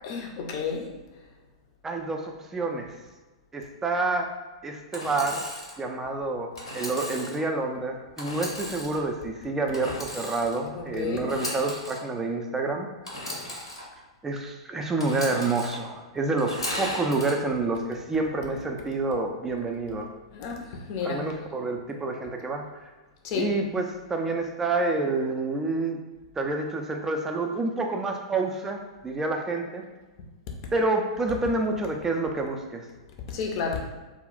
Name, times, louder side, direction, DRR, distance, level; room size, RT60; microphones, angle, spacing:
voice 1, 0.0-0.9 10.7-11.3 20.3-21.4 23.2-23.5 33.3-33.9, left 5 dB, 45° left, 2 dB, 0.5 m, -31 dB
voice 2, 1.8-2.9 3.5-4.3 4.6-5.5 5.8-12.9 14.2-20.1 21.0-22.6 23.3-26.0 26.4-29.8 30.7-32.9, right 3 dB, 15° right, 3 dB, 0.4 m, -28 dB
Engine / Sawing, 4.9-5.8 6.6-7.4 8.2-9.0 9.7-10.6 11.2-12.0 13.0-13.8 15.0-15.8 16.4-17.3, left 1 dB, 80° left, 0.8 m, -35 dB
2.3 x 2.0 x 3.8 m, 1.2 s
figure-of-eight pair, 100°, 3 cm